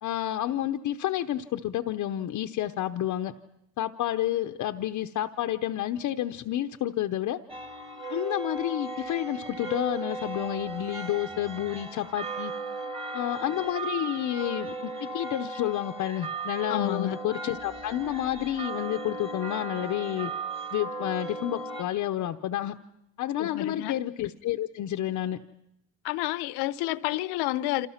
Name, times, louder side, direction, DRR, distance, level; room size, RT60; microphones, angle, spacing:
voice 1, 0.0-3.3 3.8-7.4 8.1-12.5 13.1-20.3 20.7-22.7 23.2-25.4, left 12 dB, 45° left, 0.8 m, -30 dB
sound 1, 7.5-21.8, right 3 dB, 15° right, 1.7 m, -36 dB
voice 2, 16.7-17.2 23.4-24.0 26.0-27.9, left 16 dB, 70° left, 1.0 m, -30 dB
28.5 x 27.5 x 5.8 m
cardioid pair, 160°, 40 cm